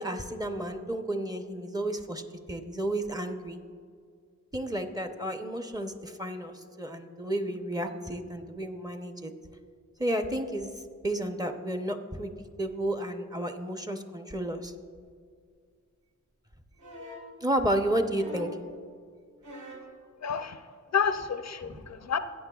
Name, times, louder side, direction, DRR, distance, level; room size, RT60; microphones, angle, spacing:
voice 1, 0.0-2.2 2.5-3.6 4.5-9.3 10.0-10.7 11.0-12.3 12.6-14.7 17.4-18.5 21.7-21.8, right 1 dB, 15° right, 6 dB, 0.7 m, -32 dB
sound 1, 16.8-17.3 18.1-18.7 19.4-19.9 21.2-21.3, left 1 dB, 75° right, 1.8 m, -43 dB
voice 2, 20.2-20.6 20.9-22.2, left 7 dB, 65° left, 11 dB, 0.4 m, -29 dB
15.5 x 8.8 x 2.3 m, 2.1 s
wide cardioid pair, 80°, 30 cm